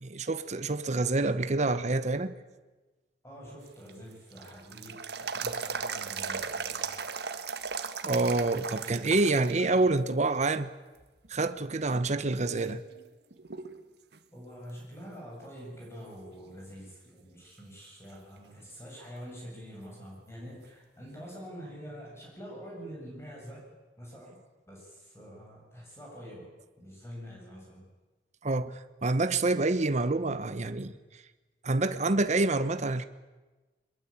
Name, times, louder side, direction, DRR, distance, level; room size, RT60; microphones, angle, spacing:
voice 1, 0.0-2.3 8.0-10.7 11.3-12.8 28.4-30.9 31.6-33.0, right 2 dB, 40° right, 0.9 m, -27 dB
voice 2, 3.2-6.9 14.3-24.4 24.7-26.5 26.8-27.9, equal, 15° left, 7.5 m, -46 dB
Tap Pouring Water, 3.7-9.8 10.1-10.2 11.0-11.5 12.0-12.1 12.6-13.8 14.1-14.2 17.6-17.7 20.6-20.7, right 5 dB, 65° right, 1.6 m, -37 dB
23.5 x 22.0 x 8.7 m
head